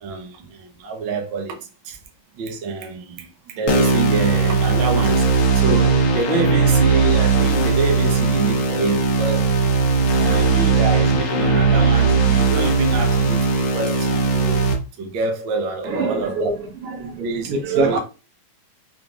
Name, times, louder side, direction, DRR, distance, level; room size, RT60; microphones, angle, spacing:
voice 1, 0.0-1.6 1.8-2.0 2.4-5.2 5.5-9.4 10.2-14.6 15.0-16.5 17.0-17.5 17.8-18.0, right 3 dB, 60° right, 1.3 m, -26 dB
sound 1, 3.7-14.7, right 4 dB, 60° left, 1.5 m, -18 dB
voice 2, 15.8-18.0, right 3 dB, 85° right, 2.3 m, -24 dB
5.5 x 3.3 x 2.4 m
omnidirectional pair, 3.3 m